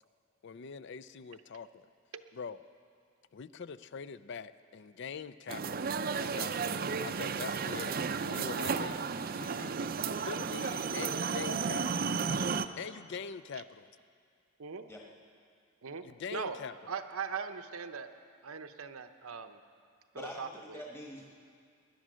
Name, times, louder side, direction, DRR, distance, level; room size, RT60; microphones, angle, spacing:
voice 1, 0.4-1.9 2.3-2.6 3.3-5.9 6.2-8.0 8.2-9.0 9.3-12.1 12.8-13.9 16.0-16.7, left 6 dB, 55° left, 15 dB, 0.4 m, -43 dB
sound 1, 5.5-12.7, right 5 dB, 45° right, 0.5 m, -33 dB
voice 2, 16.9-18.1 18.4-19.6 20.1-20.8, right 5 dB, 80° right, 8 dB, 0.8 m, -40 dB
voice 3, 20.1-21.2, left 1 dB, 10° left, -2 dB, 1.3 m, -45 dB
19.5 x 11.0 x 6.3 m, 2.3 s
head